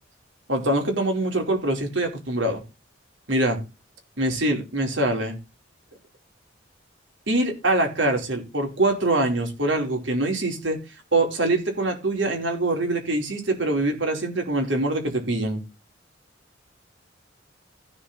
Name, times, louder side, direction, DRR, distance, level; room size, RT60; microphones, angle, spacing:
voice 1, 0.5-2.6 3.3-3.6 4.2-5.3 7.3-10.8 11.1-15.6, right 2 dB, 75° right, 3 dB, 4.5 m, -24 dB
16.5 x 5.5 x 4.3 m, 0.28 s
head